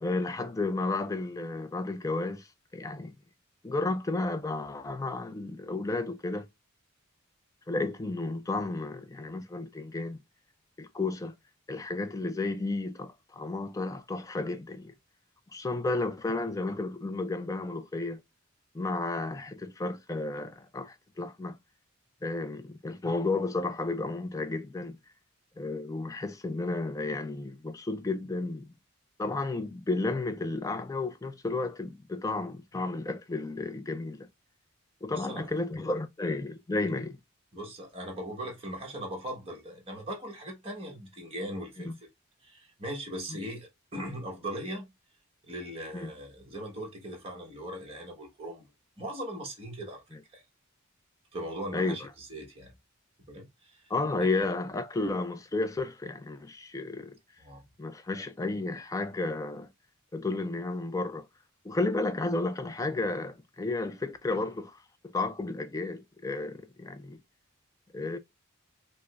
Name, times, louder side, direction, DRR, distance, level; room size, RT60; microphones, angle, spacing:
voice 1, 0.0-2.5 2.7-3.1 3.6-6.5 7.7-10.2 10.8-11.3 11.7-14.9 15.5-18.2 18.7-21.6 22.2-25.0 25.6-28.7 29.2-34.3 35.0-37.2 41.8-41.9 43.3-43.4 45.9-46.1 50.1-50.2 51.7-52.1 53.9-57.2 57.8-59.7 60.1-61.3 61.6-64.8 65.0-67.2 67.9-68.2, left 3 dB, 15° left, 0.3 m, -32 dB
voice 2, 35.1-35.5 37.5-41.9 42.4-44.9 45.4-48.6 49.0-50.0 50.3-50.4 51.3-52.7 53.3-53.8 54.2-54.4 57.4-57.6, right 1 dB, 25° right, 1.1 m, -39 dB
4.7 x 2.0 x 2.3 m
head